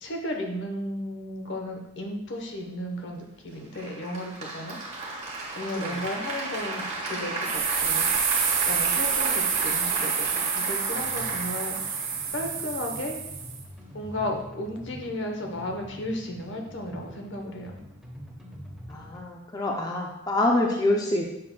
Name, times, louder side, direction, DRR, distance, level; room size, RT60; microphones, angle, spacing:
voice 1, 0.0-4.8 5.6-8.3 8.6-12.0 12.3-13.2 13.9-17.8, left 1 dB, 60° left, 2 dB, 0.9 m, -34 dB
Applause, 3.7-12.8, right 2 dB, 35° right, 1.3 m, -34 dB
sound 1, 7.4-13.6, right 7 dB, 75° right, 1.0 m, -28 dB
sound 2, 10.9-19.2, equal, ahead, 1.1 m, -45 dB
voice 2, 18.9-21.2, left 1 dB, 20° left, 0 dB, 0.4 m, -26 dB
7.5 x 5.9 x 2.2 m, 0.89 s
head